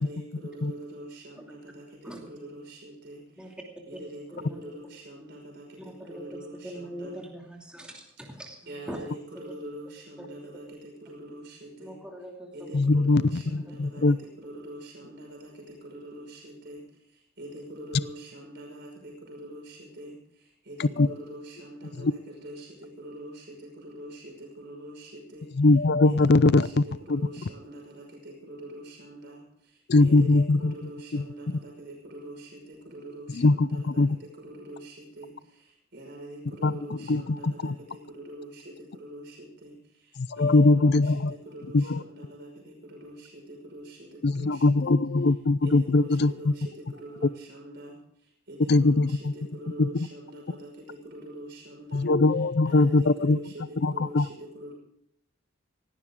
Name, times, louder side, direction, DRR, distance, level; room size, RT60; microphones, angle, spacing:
voice 1, 0.0-3.2 3.6-5.7 6.1-7.1 8.7-12.0 12.5-14.0 14.4-16.8 17.4-20.1 20.7-23.4 23.8-25.5 26.0-29.4 30.0-32.5 32.9-34.0 34.4-35.3 35.9-37.7 38.1-38.6 38.9-39.7 40.4-41.1 41.5-43.3 43.7-44.1 44.3-44.9 45.6-46.6 47.0-47.9 48.5-52.1 52.7-54.7, right 1 dB, 55° right, -1 dB, 5.7 m, -43 dB
voice 2, 4.3-4.6 5.8-6.1 6.5-9.1 11.8-12.5, right 1 dB, 5° right, -1 dB, 2.6 m, -42 dB
voice 3, 12.7-14.2 20.8-21.1 22.0-22.1 25.5-26.8 27.1-27.2 29.9-30.7 31.1-31.2 33.3-34.2 36.6-36.7 37.1-37.7 40.2-41.4 41.7-42.0 44.2-46.5 48.7-49.3 49.8-50.1 51.9-53.4 53.8-54.3, left 2 dB, 50° left, 16 dB, 0.5 m, -21 dB
18.0 x 16.0 x 3.7 m, 0.73 s
head